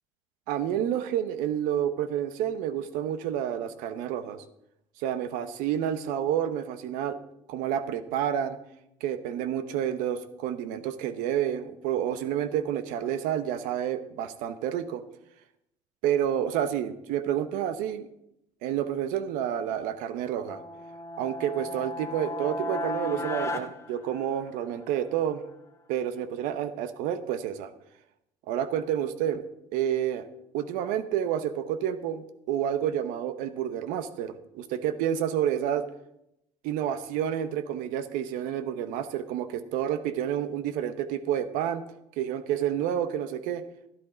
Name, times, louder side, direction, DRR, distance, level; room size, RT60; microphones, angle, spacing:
voice 1, 0.5-4.4 5.0-7.2 7.5-8.6 9.0-15.0 16.0-18.1 18.6-20.6 21.2-25.4 25.9-27.7 28.5-29.4 29.7-30.3 30.5-35.8 36.6-41.8 42.2-43.6, right 10 dB, 80° right, 12 dB, 0.9 m, -29 dB
sound 1, 20.4-24.8, left 1 dB, 20° left, 0.9 m, -35 dB
12.0 x 10.5 x 3.9 m, 0.82 s
cardioid pair, 130°, 14 cm